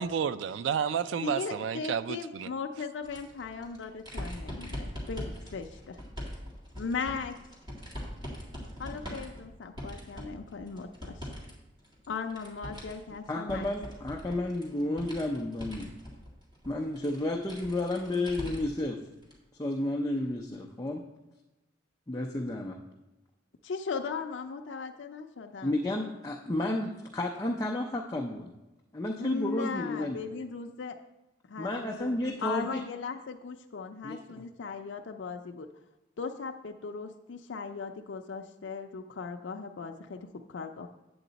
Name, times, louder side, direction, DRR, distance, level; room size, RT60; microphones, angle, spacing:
voice 1, 0.0-2.5, right 7 dB, 75° right, 0.3 m, -31 dB
voice 2, 1.2-6.0 6.8-7.4 8.8-11.3 12.1-13.7 23.6-25.8 29.2-31.0 31.5-32.1 32.4-35.7 36.2-40.9, left 5 dB, 75° left, 0.5 m, -38 dB
sound 1, 3.0-11.5 11.8-18.8 19.2-19.3 20.5-20.6, equal, 25° right, 1.9 m, -42 dB
voice 3, 13.3-15.9 16.6-19.0 19.6-21.0 22.1-22.8 25.6-28.5 28.9-30.2 31.6-32.8 34.0-34.4, left 1 dB, 20° left, 0.5 m, -32 dB
8.3 x 7.8 x 4.0 m
head